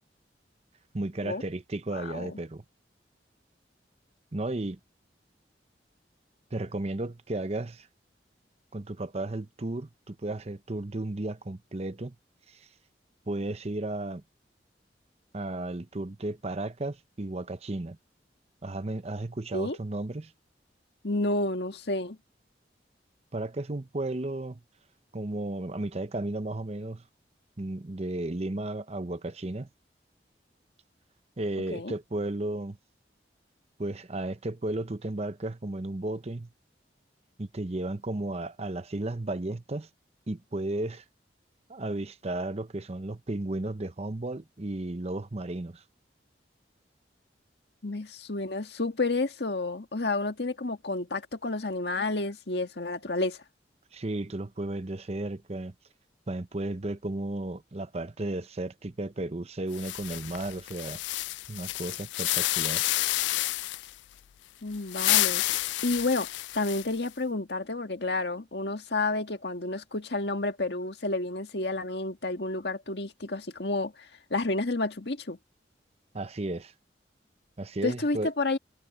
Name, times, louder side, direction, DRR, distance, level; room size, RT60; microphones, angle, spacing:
voice 1, 0.9-2.6 4.3-4.8 6.5-7.9 8.7-12.2 12.5-12.7 13.3-14.2 15.3-18.0 18.6-20.3 23.3-24.6 25.1-27.0 27.6-29.7 31.4-32.8 33.8-36.5 37.4-39.9 40.3-41.0 41.7-45.8 53.9-55.7 56.3-61.0 61.5-62.8 76.1-76.7 77.6-78.3, right 2 dB, 35° right, 0.8 m, -34 dB
voice 2, 1.9-2.4 19.5-19.8 21.0-22.2 31.7-31.9 47.8-53.4 64.6-65.4 65.8-66.3 66.5-75.4 77.8-78.6, left 2 dB, 65° left, 1.8 m, -30 dB
sound 1, 59.7-63.9 64.7-67.1, left 17 dB, 80° left, 0.3 m, -29 dB
head